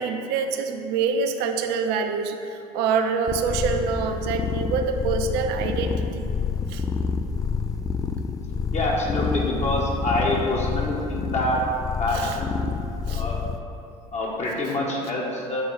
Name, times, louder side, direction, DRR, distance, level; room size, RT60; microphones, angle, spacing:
voice 1, 0.0-6.3 6.7-6.8 12.1-12.4 13.1-13.2, right 5 dB, 65° right, 5 dB, 0.6 m, -26 dB
sound 1, 3.3-13.6, left 5 dB, 20° left, 0.4 m, -28 dB
voice 2, 8.7-11.7 12.0-12.6 13.1-13.4 14.1-15.6, left 1 dB, 40° left, -2 dB, 1.7 m, -26 dB
6.6 x 4.5 x 4.9 m, 2.6 s
hypercardioid pair, 70°, 18 cm